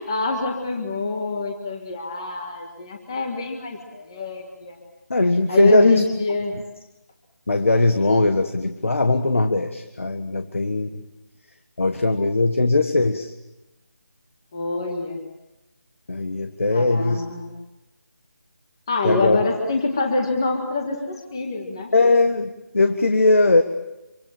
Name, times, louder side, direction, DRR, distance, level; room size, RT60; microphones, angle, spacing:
voice 1, 0.0-4.8 5.5-6.5 14.5-15.2 16.7-17.5 18.9-21.9, left 3 dB, 15° left, 2 dB, 1.6 m, -25 dB
voice 2, 5.1-6.0 6.5-6.6 7.5-11.0 11.8-13.3 16.1-17.2 19.0-19.4 21.9-23.6, left 2 dB, 45° left, 7 dB, 1.6 m, -19 dB
26.5 x 24.5 x 7.3 m, 0.92 s
figure-of-eight pair, 180°, 10 cm